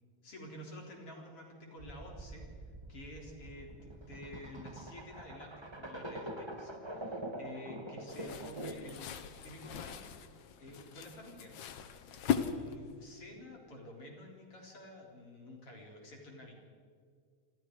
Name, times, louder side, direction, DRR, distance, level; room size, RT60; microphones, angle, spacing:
voice 1, 0.2-2.5 2.9-9.1 9.4-10.2 10.6-11.5 12.2-16.5, left 1 dB, 45° left, 0 dB, 4.9 m, -50 dB
sound 1, 1.8-9.0, right 1 dB, 15° right, 0.9 m, -45 dB
sound 2, 8.1-13.1, left 8 dB, 70° left, 2.6 m, -39 dB
27.5 x 27.0 x 4.8 m, 2.1 s
omnidirectional pair, 3.5 m